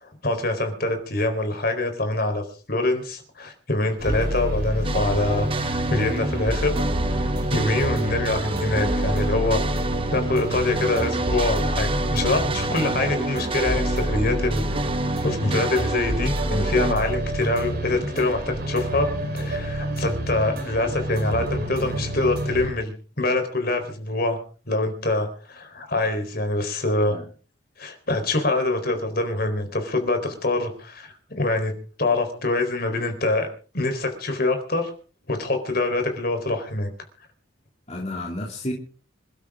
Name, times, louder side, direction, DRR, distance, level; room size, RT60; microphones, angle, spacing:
voice 1, 0.0-6.7 7.1-7.2 7.5-9.6 10.1-14.6 15.2-19.1 19.3-24.4 24.7-27.2 27.8-31.7 32.0-33.5 33.7-34.9 35.3-36.9, left 2 dB, 50° left, 6 dB, 4.1 m, -25 dB
sound 1, 4.0-22.7, equal, 50° right, 5.8 m, -28 dB
sound 2, 4.8-16.9, right 2 dB, 25° right, 1.0 m, -29 dB
voice 2, 37.9-38.7, left 1 dB, 30° left, 0 dB, 2.7 m, -32 dB
27.0 x 12.5 x 3.7 m, 0.39 s
head